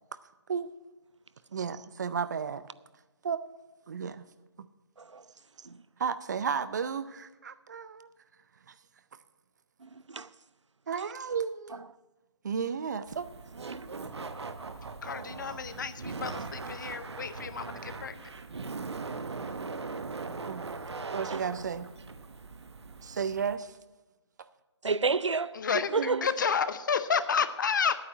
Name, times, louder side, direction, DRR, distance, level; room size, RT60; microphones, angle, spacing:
voice 1, 1.5-2.6 3.2-3.4 3.9-4.3 4.6-4.7 6.0-8.1 10.9-11.8 12.4-13.3 20.5-20.7 21.1-21.9 23.0-23.7 26.0-26.3, right 6 dB, 40° right, 0.5 m, -33 dB
voice 2, 9.8-10.3 13.7-13.9 19.3-19.4 21.3-21.4 24.8-25.6 25.9-26.2, right 4 dB, 85° right, 0.5 m, -31 dB
Laughter, 13.1-23.6, right 4 dB, 65° right, 1.0 m, -40 dB
voice 3, 15.0-18.3 25.6-28.0, left 6 dB, 45° left, 0.7 m, -31 dB
9.1 x 8.5 x 8.5 m
figure-of-eight pair, 150°, 15 cm